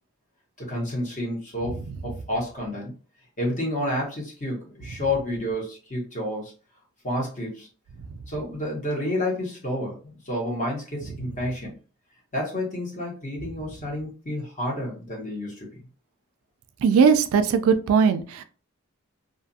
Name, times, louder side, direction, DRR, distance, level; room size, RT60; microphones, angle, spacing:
voice 1, 0.6-2.9 3.4-6.5 7.0-7.7 8.3-10.0 10.2-11.7 12.3-15.8, left 1 dB, 35° left, -2 dB, 1.1 m, -30 dB
voice 2, 16.8-18.4, right 6 dB, 75° right, 10 dB, 0.3 m, -19 dB
2.5 x 2.4 x 2.6 m, 0.37 s
head